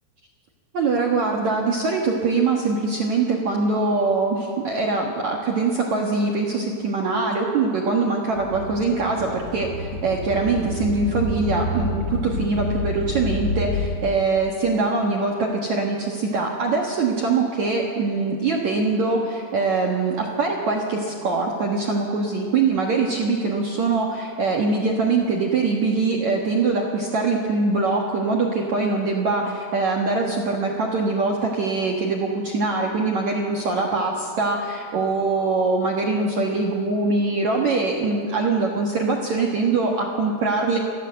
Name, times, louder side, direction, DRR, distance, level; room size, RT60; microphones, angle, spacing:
voice 1, 0.7-9.7 10.0-40.8, right 3 dB, 70° right, -1 dB, 1.7 m, -23 dB
sound 1, 8.3-14.0, left 2 dB, 70° left, 0.9 m, -29 dB
26.0 x 15.0 x 7.8 m, 2.4 s
omnidirectional pair, 5.9 m